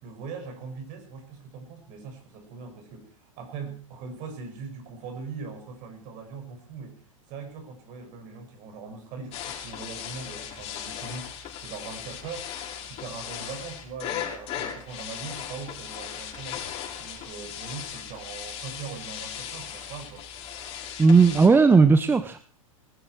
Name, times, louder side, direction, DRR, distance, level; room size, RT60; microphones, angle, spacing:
voice 1, 0.0-7.0 7.3-12.5 12.8-16.6 17.0-20.2, right 5 dB, 45° right, 5 dB, 6.2 m, -41 dB
sound 1, 9.3-21.5, left 9 dB, 35° left, 5.9 m, -37 dB
voice 2, 21.0-22.4, right 4 dB, 10° right, 12 dB, 0.9 m, -16 dB
20.0 x 14.0 x 4.7 m, 0.42 s
hypercardioid pair, 100°, 18 cm